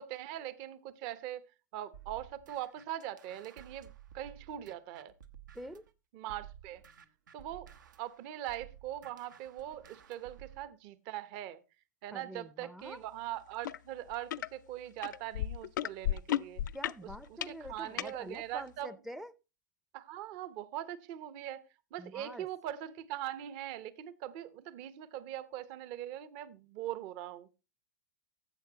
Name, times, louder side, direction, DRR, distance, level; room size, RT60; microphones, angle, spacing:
voice 1, 0.0-5.1 6.1-6.8 7.3-7.7 8.0-11.6 12.0-16.6 17.3-18.9 19.9-21.6 21.9-27.5, right 12 dB, 45° right, 0.9 m, -41 dB
sound 1, 1.9-5.9 6.3-10.7, right 10 dB, 80° right, 1.0 m, -54 dB
voice 2, 5.5-5.8 12.1-13.0 16.7-19.3 22.0-22.5, equal, 5° right, 0.5 m, -46 dB
sound 2, 13.6-13.8 14.1-14.5 15.0-18.1 18.8-18.9, left 11 dB, 75° left, 0.4 m, -34 dB
15.0 x 7.6 x 2.9 m
hypercardioid pair, 115°, 10 cm